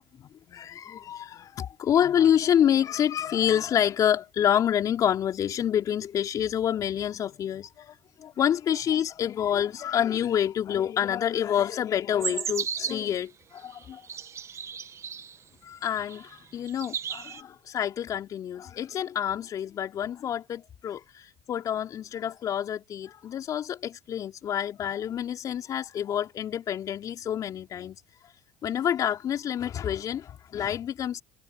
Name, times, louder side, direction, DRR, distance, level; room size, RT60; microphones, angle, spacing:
voice 1, 0.2-14.1 15.6-28.0 28.6-31.2, left 9 dB, 50° left, 3.3 m, -28 dB
sound 1, 12.2-13.1 13.8-15.4 15.9-16.4 16.7-17.4, right 7 dB, 40° right, 1.8 m, -34 dB
hypercardioid pair, 65°, 8 cm